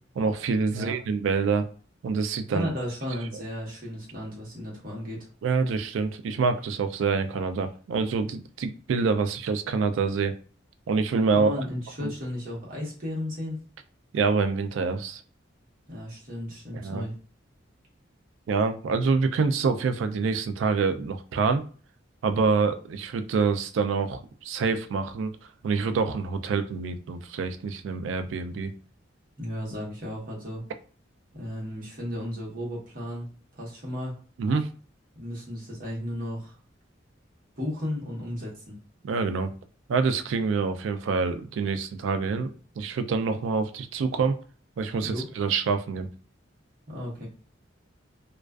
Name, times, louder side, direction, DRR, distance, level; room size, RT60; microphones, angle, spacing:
voice 1, 0.2-1.6 2.0-2.7 5.4-10.3 10.9-11.5 12.0-12.1 14.1-15.2 16.8-17.0 18.5-21.6 22.2-25.3 25.6-28.7 34.4-34.7 39.0-39.5 39.9-42.5 42.8-44.4 44.8-46.1, right 4 dB, 80° right, 9 dB, 0.3 m, -26 dB
voice 2, 2.5-5.3 11.3-13.6 15.9-17.1 29.4-30.6 31.3-33.3 33.5-34.1 35.1-36.6 37.6-38.8 45.0-45.3 46.9-47.3, left 1 dB, 50° right, -4 dB, 1.0 m, -34 dB
2.3 x 2.3 x 2.3 m, 0.41 s
head